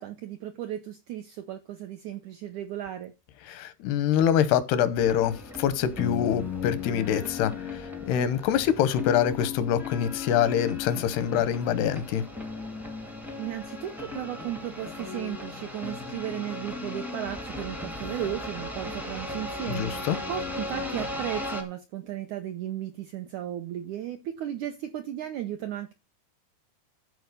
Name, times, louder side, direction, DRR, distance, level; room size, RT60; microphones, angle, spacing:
voice 1, 0.0-3.1 13.4-25.9, right 11 dB, 80° right, 1.7 m, -35 dB
voice 2, 3.5-12.2 19.7-20.2, left 9 dB, 90° left, 3.0 m, -25 dB
sound 1, 5.0-21.6, left 4 dB, ahead, 0.5 m, -36 dB
13.0 x 4.7 x 6.7 m
omnidirectional pair, 4.5 m